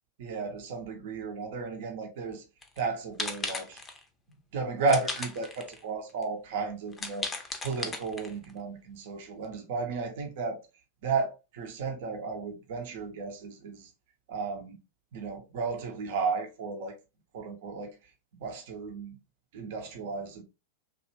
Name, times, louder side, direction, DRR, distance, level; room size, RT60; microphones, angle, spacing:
voice 1, 0.2-2.4 2.8-3.8 4.5-10.6 11.0-13.9 14.3-14.8 15.1-17.0 17.3-18.0 18.4-19.2 19.5-20.4, right 4 dB, 55° right, 0.7 m, -33 dB
sound 1, 2.6-2.8 3.2-4.0 4.9-5.8 6.2-6.3 6.9-8.5, left 3 dB, 15° left, 0.6 m, -36 dB
3.0 x 2.5 x 2.8 m
figure-of-eight pair, 90°, 0 cm